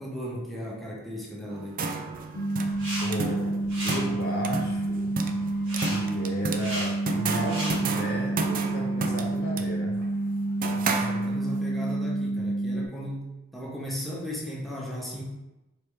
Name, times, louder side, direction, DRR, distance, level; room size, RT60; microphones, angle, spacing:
voice 1, 0.0-1.8 10.0-10.1 10.7-15.2, equal, ahead, -5 dB, 0.8 m, -36 dB
sound 1, 1.5-11.6, right 3 dB, 40° right, 0.4 m, -33 dB
sound 2, 2.3-12.9, right 2 dB, 70° left, 0.6 m, -29 dB
sound 3, 2.7-3.1 3.4-4.0 5.7-6.0 6.5-6.9 7.3-7.8, right 1 dB, 65° right, 1.5 m, -34 dB
voice 2, 3.0-5.1 5.8-10.0, equal, 50° left, -2 dB, 1.0 m, -34 dB
4.2 x 3.4 x 3.4 m, 0.98 s
head